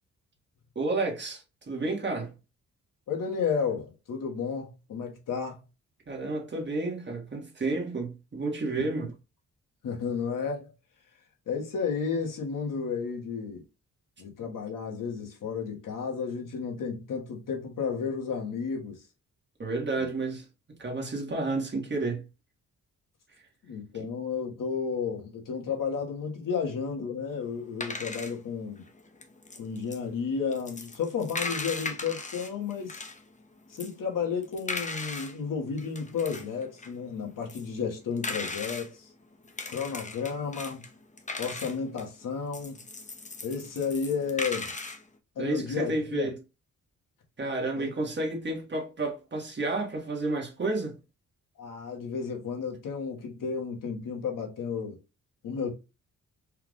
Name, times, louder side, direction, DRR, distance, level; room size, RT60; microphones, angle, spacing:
voice 1, 0.7-2.3 6.1-9.1 19.6-20.5 20.8-22.2 23.3-23.4 23.9-24.1 45.4-46.4 47.4-51.0, right 2 dB, 35° right, 1.5 m, -31 dB
voice 2, 3.1-5.6 9.8-10.7 11.5-13.6 14.2-19.0 20.0-20.1 23.6-28.8 29.6-33.0 33.7-39.1 39.7-40.8 41.4-42.7 43.4-44.7 45.3-46.3 47.8-47.9 51.6-55.0 55.4-55.7, left 6 dB, 85° left, 1.5 m, -32 dB
sound 1, 27.4-33.3 33.7-35.4 35.7-38.9 39.4-45.0, left 3 dB, 25° left, 0.8 m, -38 dB
4.7 x 2.5 x 3.5 m
cardioid pair, 105°, 32 cm